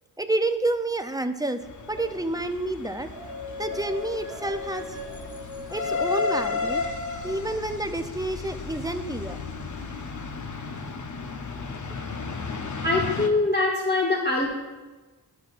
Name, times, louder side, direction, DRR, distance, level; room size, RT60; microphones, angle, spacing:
voice 1, 0.2-1.6 1.9-3.1 3.6-5.0 5.7-6.8 7.2-9.4, right 2 dB, 10° right, 7 dB, 0.4 m, -29 dB
sound 1, 1.6-13.3, left 4 dB, 50° left, 0.7 m, -34 dB
sound 2, 3.1-7.6, left 4 dB, 35° right, 1.5 m, -38 dB
voice 2, 12.8-14.5, left 2 dB, 25° left, -3 dB, 1.0 m, -23 dB
12.0 x 6.1 x 2.5 m, 1.2 s
wide cardioid pair, 75°, 40 cm